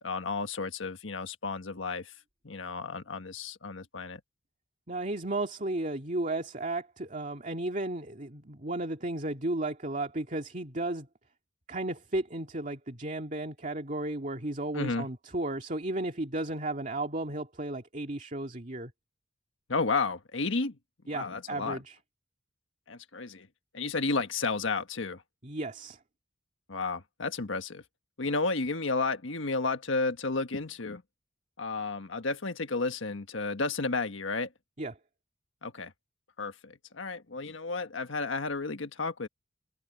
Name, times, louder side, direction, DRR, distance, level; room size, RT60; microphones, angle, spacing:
voice 1, 0.0-2.1 2.4-4.2 14.7-15.1 19.7-20.8 21.1-21.8 22.9-23.5 23.7-25.2 26.7-27.8 28.2-31.0 31.6-34.5 35.6-35.9 36.4-39.3, left 3 dB, 80° left, 1.4 m, -32 dB
voice 2, 4.9-11.1 11.7-18.9 21.1-22.0 25.4-26.0 34.8-34.9, right 2 dB, 40° right, 2.4 m, -34 dB
open air
head